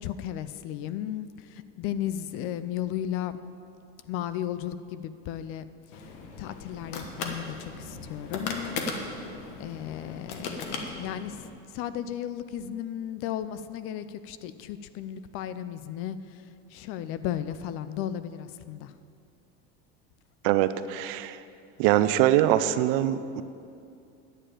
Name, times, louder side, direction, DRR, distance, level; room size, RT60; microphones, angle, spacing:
voice 1, 0.0-3.4 4.1-6.0 6.4-8.8 9.2-9.3 9.6-11.4 11.7-18.9, left 10 dB, 45° left, 13 dB, 0.4 m, -35 dB
sound 1, 5.9-11.5, left 4 dB, 60° left, 1.4 m, -37 dB
voice 2, 20.4-21.4 21.8-23.4, right 13 dB, 60° right, 13 dB, 0.5 m, -23 dB
10.0 x 6.7 x 8.9 m, 2.5 s
cardioid pair, 160°, 32 cm